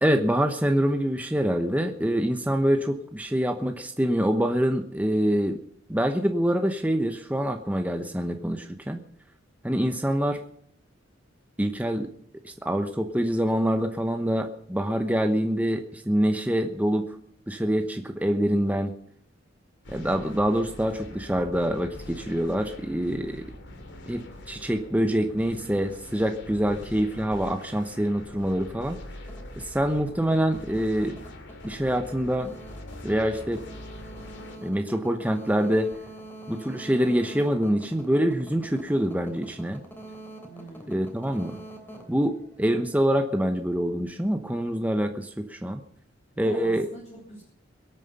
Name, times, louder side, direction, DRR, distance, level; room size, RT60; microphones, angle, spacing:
voice 1, 0.0-5.6 5.9-9.0 9.6-10.4 11.6-12.1 12.4-17.1 17.5-18.9 19.9-23.4 24.1-29.0 29.6-31.2 31.6-32.5 33.0-33.6 34.6-35.9 36.5-39.8 40.9-41.6 42.1-45.8 46.4-46.9, equal, 10° right, 5 dB, 1.0 m, -25 dB
sound 1, 19.8-34.6, left 1 dB, 65° left, 2.9 m, -43 dB
sound 2, 29.1-43.0, right 1 dB, 10° left, 3.3 m, -45 dB
voice 2, 40.5-41.2 46.3-47.4, equal, 35° left, -2 dB, 3.4 m, -43 dB
23.0 x 9.1 x 5.4 m, 0.66 s
head